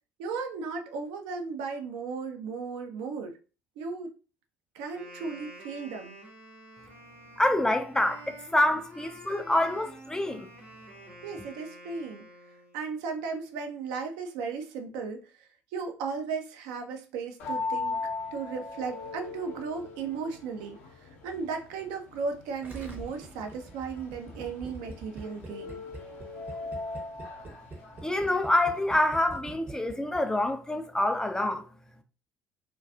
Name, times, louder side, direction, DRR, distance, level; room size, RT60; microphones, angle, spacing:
voice 1, 0.2-3.4 3.8-4.1 4.7-6.2 11.2-12.2 12.7-18.0 18.3-25.8, right 5 dB, 60° right, 0.4 m, -36 dB
Wind instrument woodwind instrument, 4.9-12.9, right 1 dB, 90° right, 0.9 m, -49 dB
voice 2, 7.4-10.5 28.0-31.7, left 1 dB, 10° left, 0.3 m, -26 dB
sound 1, 17.4-29.3, left 3 dB, 60° left, 0.6 m, -39 dB
Gurgling, 22.6-30.2 30.5-30.6, right 3 dB, 30° right, 0.7 m, -44 dB
2.3 x 2.2 x 2.4 m
figure-of-eight pair, 55°, 7 cm